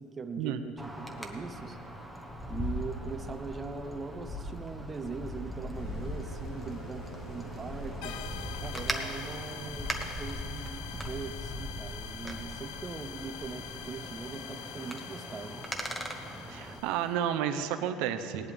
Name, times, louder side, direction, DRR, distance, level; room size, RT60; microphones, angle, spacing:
voice 1, 0.0-1.8 2.5-8.2 8.6-15.6, right 4 dB, 25° right, 7 dB, 0.7 m, -41 dB
Wind, 0.8-16.8, equal, ahead, 1.1 m, -39 dB
sound 1, 5.7-9.6, right 2 dB, 60° left, 2.2 m, -48 dB
sound 2, 8.0-17.4, left 11 dB, 80° left, 0.5 m, -45 dB
voice 2, 16.5-18.5, right 9 dB, 75° right, 8 dB, 0.7 m, -31 dB
18.5 x 11.0 x 3.5 m, 2.5 s
cardioid pair, 120°, 0 cm